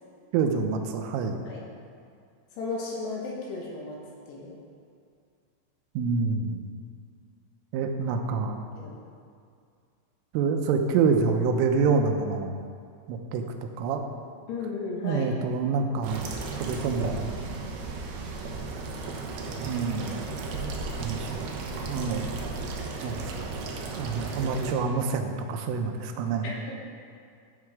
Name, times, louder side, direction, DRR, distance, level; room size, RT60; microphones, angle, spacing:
voice 1, 0.3-1.4 6.0-6.7 7.7-8.7 10.3-12.6 13.1-13.4 13.8-14.1 15.0-16.2 16.6-17.3 19.6-20.3 21.0-21.5 21.8-22.3 23.0-23.3 24.0-26.5, right 5 dB, 90° right, 5 dB, 3.3 m, -27 dB
voice 2, 2.6-4.0 4.3-4.6 8.7-9.0 14.5-15.3 26.4-26.7, left 3 dB, 70° left, -2 dB, 3.0 m, -34 dB
sound 1, 16.0-24.7, right 3 dB, 75° right, 2.6 m, -35 dB
12.0 x 7.6 x 4.7 m, 2.3 s
omnidirectional pair, 5.7 m